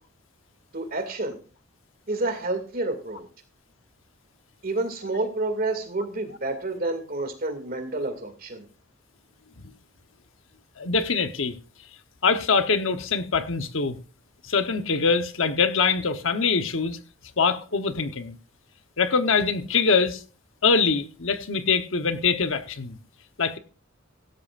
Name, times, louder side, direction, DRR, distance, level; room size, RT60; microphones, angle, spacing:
voice 1, 0.7-1.4 2.1-3.3 4.6-8.7, right 2 dB, 45° right, 2.4 m, -29 dB
voice 2, 10.8-11.5 12.2-14.0 14.4-17.0 17.4-18.3 19.0-20.2 20.6-23.0 23.4-23.6, left 5 dB, 70° left, 1.1 m, -23 dB
16.5 x 12.5 x 2.5 m
head